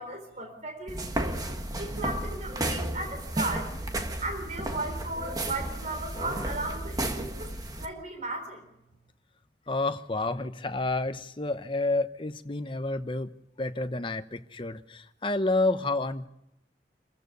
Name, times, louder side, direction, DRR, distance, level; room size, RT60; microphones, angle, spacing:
voice 1, 0.0-1.4 1.8-3.7 4.2-7.5 7.8-8.6, right 2 dB, 40° right, 5 dB, 3.8 m, -36 dB
sound 1, 0.9-7.9, right 1 dB, 20° right, 1.6 m, -33 dB
voice 2, 9.7-13.3 13.6-16.3, left 2 dB, 30° left, 10 dB, 0.9 m, -29 dB
27.5 x 15.0 x 6.8 m, 0.88 s
head